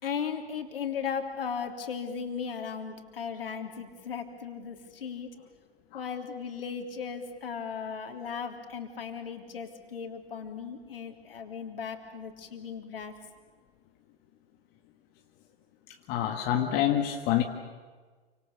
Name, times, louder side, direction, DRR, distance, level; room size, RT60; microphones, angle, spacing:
voice 1, 0.0-5.3 5.9-13.1, left 6 dB, 65° left, 4 dB, 3.3 m, -36 dB
voice 2, 16.1-17.4, left 11 dB, 30° left, 3 dB, 1.8 m, -26 dB
29.0 x 25.0 x 7.0 m, 1.4 s
figure-of-eight pair, 110°, 31 cm